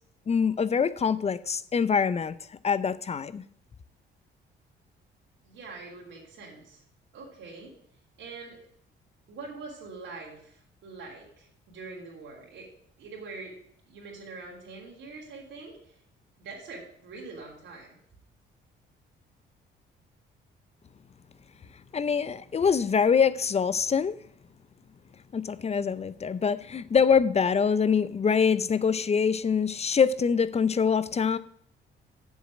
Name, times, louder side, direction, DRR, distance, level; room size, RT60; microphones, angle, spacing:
voice 1, 0.3-2.4 2.6-3.4 21.9-24.2 25.3-31.4, left 6 dB, 30° left, 0.6 m, -24 dB
voice 2, 5.4-6.8 7.1-7.8 8.2-8.6 9.3-12.7 13.0-13.6 13.9-16.0 16.4-18.0, right 3 dB, 75° right, 3.2 m, -44 dB
7.4 x 7.3 x 6.0 m
cardioid pair, 90°, 20 cm